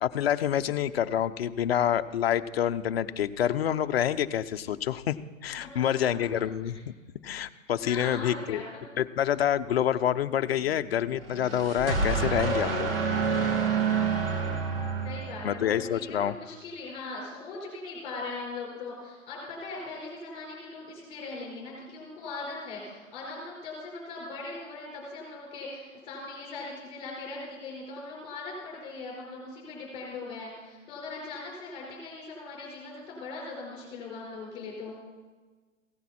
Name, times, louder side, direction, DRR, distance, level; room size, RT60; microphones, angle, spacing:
voice 1, 0.0-5.2 5.4-6.8 7.2-8.6 9.0-12.9 15.4-16.3, left 10 dB, 50° left, 10 dB, 0.6 m, -27 dB
voice 2, 5.6-6.0 6.6-6.8 7.5-8.8 15.0-34.9, left 3 dB, 15° left, -2 dB, 4.6 m, -40 dB
sound 1, 11.2-15.8, right 5 dB, 45° right, 2.3 m, -28 dB
16.0 x 10.5 x 4.3 m, 1.3 s
hypercardioid pair, 160°, 40 cm